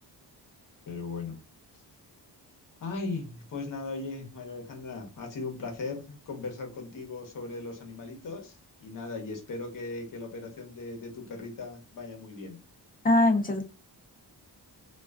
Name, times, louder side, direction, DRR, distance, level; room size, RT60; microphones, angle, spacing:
voice 1, 0.9-1.4 2.8-12.6, left 3 dB, 50° left, 2 dB, 0.9 m, -38 dB
voice 2, 13.0-13.6, left 2 dB, 20° left, 5 dB, 0.5 m, -22 dB
2.4 x 2.2 x 2.3 m, 0.30 s
wide cardioid pair, 120°, 43 cm